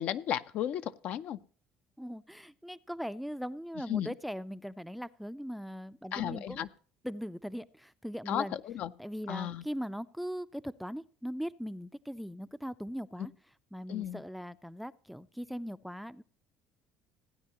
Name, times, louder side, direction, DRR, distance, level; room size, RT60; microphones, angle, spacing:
voice 1, 0.0-1.4 3.9-4.1 6.1-6.7 8.3-8.9 9.3-9.6 13.9-14.2, left 11 dB, 60° left, 13 dB, 0.5 m, -34 dB
voice 2, 2.0-6.6 7.0-8.5 9.0-13.3 13.7-16.2, equal, ahead, 16 dB, 0.4 m, -40 dB
16.5 x 9.1 x 2.9 m, 0.41 s
supercardioid pair, 95°, 3 cm